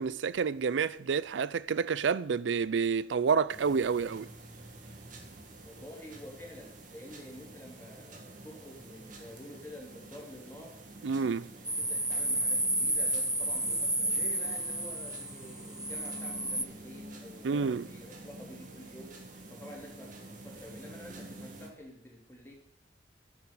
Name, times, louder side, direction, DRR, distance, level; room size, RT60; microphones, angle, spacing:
voice 1, 0.0-4.3 11.0-11.5 17.4-17.8, right 5 dB, 85° right, 0.4 m, -29 dB
sound 1, 3.5-21.7, right 2 dB, 45° right, 2.3 m, -48 dB
voice 2, 5.6-10.8 11.8-19.2 19.5-22.5, left 1 dB, 15° left, 3.3 m, -49 dB
sound 2, 11.6-16.6, right 1 dB, 5° right, 0.4 m, -31 dB
10.5 x 7.3 x 9.4 m
head